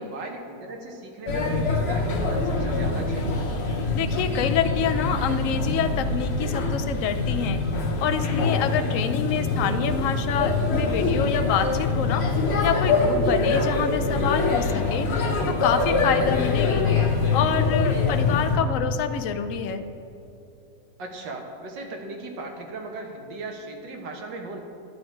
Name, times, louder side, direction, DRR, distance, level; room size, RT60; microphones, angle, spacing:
voice 1, 0.0-3.4 21.0-24.6, right 2 dB, 85° right, 2 dB, 1.8 m, -37 dB
Male speech man speaking / Child speech kid speaking / Chatter, 1.3-18.6, left 3 dB, 45° left, 1.1 m, -24 dB
voice 2, 3.9-7.6 8.0-12.3 12.6-15.1 15.5-16.9 17.3-19.8, left 8 dB, 70° left, 9 dB, 0.7 m, -27 dB
10.5 x 9.3 x 4.5 m, 2.9 s
omnidirectional pair, 1.9 m